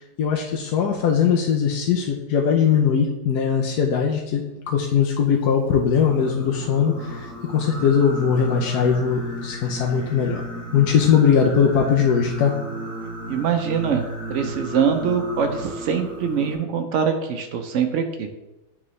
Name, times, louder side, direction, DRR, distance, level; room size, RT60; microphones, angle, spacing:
voice 1, 0.2-10.4 10.7-12.5, left 7 dB, 70° left, 0 dB, 1.1 m, -20 dB
Singing, 5.8-16.6, right 1 dB, 5° left, 2.1 m, -34 dB
voice 2, 13.3-14.0 14.3-18.3, right 7 dB, 90° right, 6 dB, 0.6 m, -23 dB
8.8 x 3.6 x 3.1 m, 0.99 s
omnidirectional pair, 1.9 m